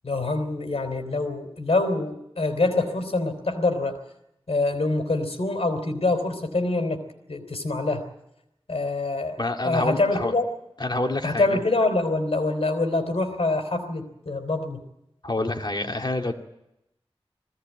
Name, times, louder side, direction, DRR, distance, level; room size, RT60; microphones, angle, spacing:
voice 1, 0.0-4.0 4.5-7.0 7.3-8.0 8.7-9.4 9.6-10.5 11.2-14.8, left 2 dB, 90° left, 6 dB, 3.4 m, -25 dB
voice 2, 9.4-10.3 10.8-11.6 15.2-16.3, left 2 dB, 45° left, 3 dB, 2.2 m, -27 dB
20.0 x 16.5 x 9.2 m, 0.86 s
wide cardioid pair, 50°, 10 cm